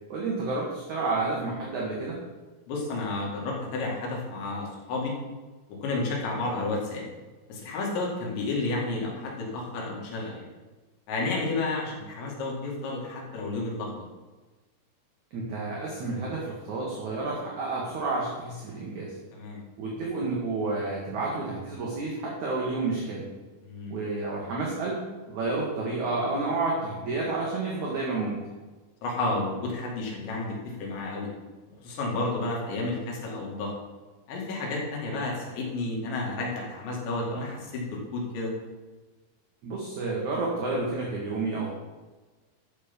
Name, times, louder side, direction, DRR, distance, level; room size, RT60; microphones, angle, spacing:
voice 1, 0.1-2.2 15.3-19.1 19.8-23.3 23.9-25.0 25.3-28.4 39.6-41.7, right 3 dB, 60° right, -3 dB, 2.2 m, -30 dB
voice 2, 2.7-5.2 5.8-7.0 7.5-10.4 11.1-14.0 19.3-19.6 23.6-24.0 29.0-31.3 31.8-33.7 34.3-38.5, left 2 dB, 80° left, -2 dB, 4.5 m, -31 dB
12.0 x 6.7 x 5.3 m, 1.3 s
omnidirectional pair, 5.1 m